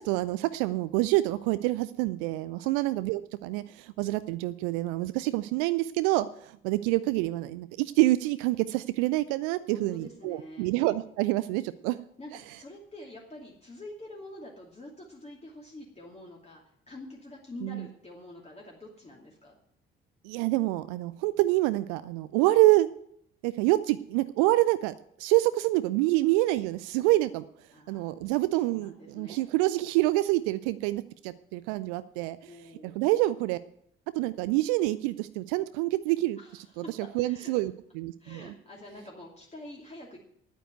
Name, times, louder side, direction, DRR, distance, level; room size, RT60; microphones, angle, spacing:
voice 1, 0.0-12.0 17.6-17.9 20.2-22.9 23.4-27.4 27.9-32.4 33.0-33.6 34.2-36.4 37.1-38.5, right 18 dB, 60° right, 15 dB, 0.5 m, -27 dB
voice 2, 9.7-10.7 12.2-19.6 27.7-29.5 32.5-33.0 36.4-36.9 37.2-37.6 38.2-40.2, left 1 dB, 20° left, -2 dB, 2.6 m, -47 dB
10.0 x 9.2 x 7.9 m, 0.71 s
figure-of-eight pair, 45°, 29 cm